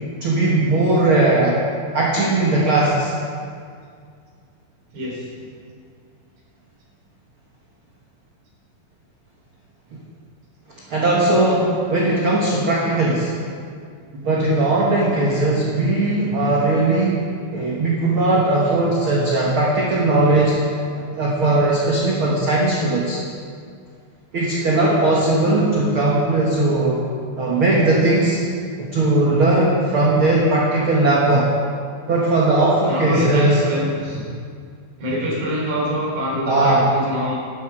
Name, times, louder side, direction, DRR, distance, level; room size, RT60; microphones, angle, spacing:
voice 1, 0.2-1.6 1.9-3.1 9.9-10.0 10.9-13.3 14.1-17.2 17.5-20.6 20.9-23.2 24.3-27.0 27.4-28.4 28.8-31.5 32.1-33.6 36.5-36.9, right 2 dB, 55° right, -4 dB, 1.5 m, -18 dB
voice 2, 4.9-5.3 20.2-20.4 32.9-34.3 35.0-37.3, equal, 75° right, -5 dB, 5.3 m, -25 dB
12.0 x 11.0 x 4.9 m, 2.2 s
omnidirectional pair, 4.3 m